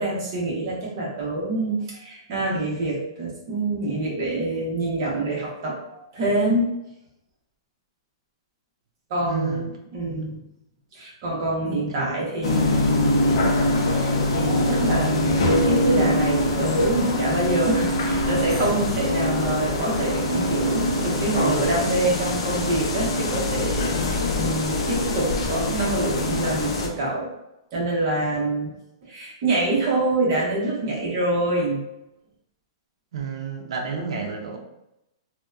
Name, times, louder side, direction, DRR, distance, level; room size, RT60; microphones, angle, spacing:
voice 1, 0.0-6.6 9.1-10.4 10.9-13.5 13.9-27.3 27.7-28.7 29.1-31.8, right 2 dB, 40° right, -4 dB, 0.8 m, -26 dB
voice 2, 9.2-9.7 10.0-10.3 11.7-12.2 33.1-34.6, right 5 dB, 75° right, 1 dB, 0.5 m, -31 dB
sound 1, 12.4-26.9, left 1 dB, 70° left, 0.5 m, -23 dB
2.7 x 2.1 x 2.3 m, 0.86 s
hypercardioid pair, 165°, 3 cm